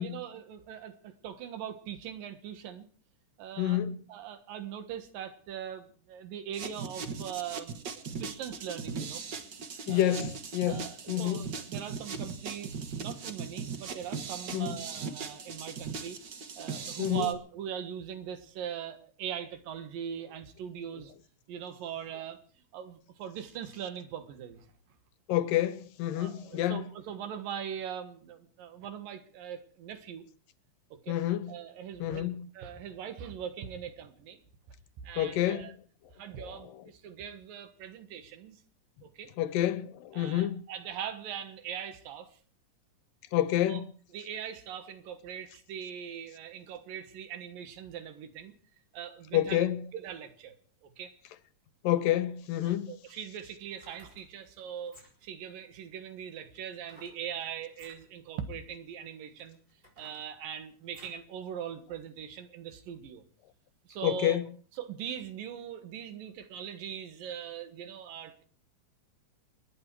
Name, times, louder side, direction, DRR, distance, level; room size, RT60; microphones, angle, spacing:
voice 1, 0.0-2.9 3.4-3.8 4.1-9.2 9.9-10.3 10.6-16.2 16.6-21.1 21.5-22.4 22.7-24.7 26.1-30.2 30.9-31.2 31.5-32.3 32.5-34.4 35.0-35.7 36.1-38.6 39.0-39.3 40.1-42.4 43.6-43.8 44.1-48.5 48.9-49.7 49.9-50.5 50.8-51.2 52.6-55.0 55.2-59.6 60.0-63.2 63.8-64.4 64.8-68.4, right 8 dB, 85° right, 3.2 m, -41 dB
voice 2, 3.6-4.0 9.9-11.5 14.5-14.8 17.0-17.3 25.3-26.8 31.1-31.5 32.0-32.5 35.2-35.7 36.4-36.6 39.4-40.6 43.3-43.9 49.3-49.8 51.8-52.9 64.0-64.4, left 13 dB, 80° left, 2.6 m, -28 dB
sound 1, 6.5-17.3, right 5 dB, 55° right, 1.2 m, -39 dB
sound 2, 53.6-54.3 54.8-55.4 56.8-57.2 57.7-58.0 58.7-58.8 59.4-61.3 61.7-61.8, equal, 15° right, 5.9 m, -57 dB
29.0 x 9.9 x 4.7 m
omnidirectional pair, 3.9 m